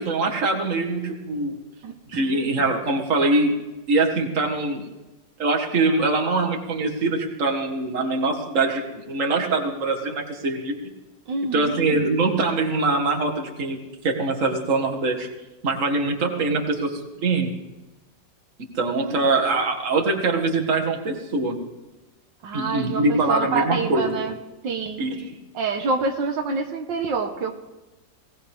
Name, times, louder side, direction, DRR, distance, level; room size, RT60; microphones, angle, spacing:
voice 1, 0.0-1.6 2.1-3.5 3.9-4.9 5.4-10.7 11.5-13.8 14.0-15.3 15.6-17.6 18.7-21.6 22.5-24.2 25.0-25.3, right 3 dB, 45° right, 1 dB, 2.1 m, -23 dB
voice 2, 1.8-2.3 11.3-11.7 19.0-19.2 22.4-24.4 24.6-25.0 25.5-27.5, right 4 dB, 85° right, 3 dB, 2.0 m, -27 dB
19.5 x 18.5 x 3.6 m, 1.1 s
omnidirectional pair, 1.9 m